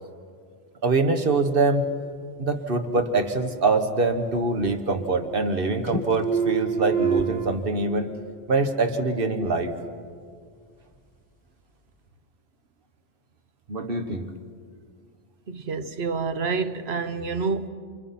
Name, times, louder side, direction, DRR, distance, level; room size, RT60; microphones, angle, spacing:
voice 1, 0.8-1.9 2.4-8.1 8.5-9.8 13.7-14.3, right 3 dB, 60° right, 1.6 m, -24 dB
sound 1, 3.4-4.4 4.7-5.6 5.9-7.5, right 5 dB, 20° left, 1.7 m, -28 dB
voice 2, 15.5-17.7, right 4 dB, 85° right, 1.3 m, -28 dB
28.5 x 26.5 x 5.9 m
omnidirectional pair, 1.0 m